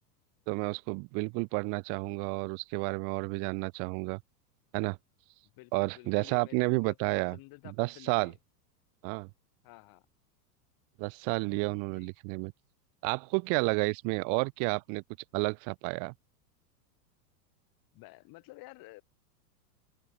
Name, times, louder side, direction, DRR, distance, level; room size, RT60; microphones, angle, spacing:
voice 1, 0.5-4.2 4.7-5.0 5.7-7.4 7.6-8.3 9.0-9.3 11.0-12.5 13.0-15.0 15.3-16.1, right 38 dB, 40° right, 0.7 m, -31 dB
voice 2, 5.5-8.4 9.6-10.0 11.9-12.1 17.9-19.0, left 22 dB, 45° left, 7.8 m, -52 dB
open air
hypercardioid pair, 125°, 48 cm